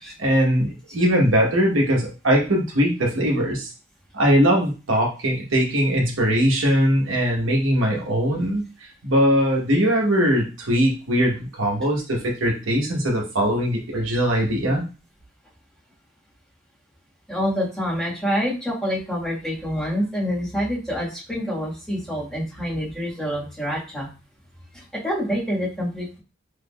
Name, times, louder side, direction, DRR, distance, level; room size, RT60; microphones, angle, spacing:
voice 1, 0.2-3.7 4.1-8.6 9.0-14.8, equal, 85° right, -1 dB, 1.0 m, -21 dB
voice 2, 17.3-24.1 24.7-26.2, equal, 5° left, -7 dB, 1.4 m, -27 dB
3.5 x 3.3 x 2.3 m, 0.32 s
head